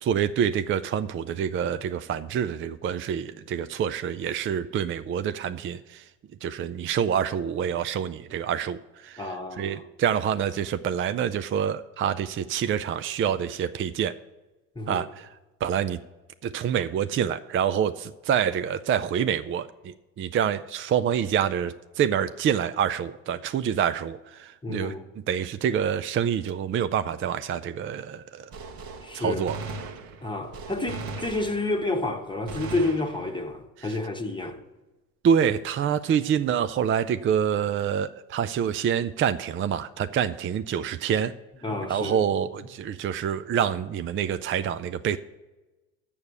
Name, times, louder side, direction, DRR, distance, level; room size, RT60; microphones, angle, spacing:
voice 1, 0.0-6.0 6.4-14.2 14.9-15.3 15.6-16.0 16.4-24.9 25.3-28.5 29.1-29.6 33.8-33.9 35.2-41.3 41.9-45.2, right 8 dB, 35° right, 0.4 m, -27 dB
voice 2, 9.2-9.9 14.7-15.0 24.6-25.1 29.0-29.5 30.2-34.6 41.6-42.2, left 2 dB, 10° left, 1.1 m, -30 dB
Gunshot gunfire, 28.5-32.0 32.5-33.6, right 3 dB, 60° right, 1.2 m, -38 dB
7.1 x 6.9 x 8.1 m
supercardioid pair, 75°, 39 cm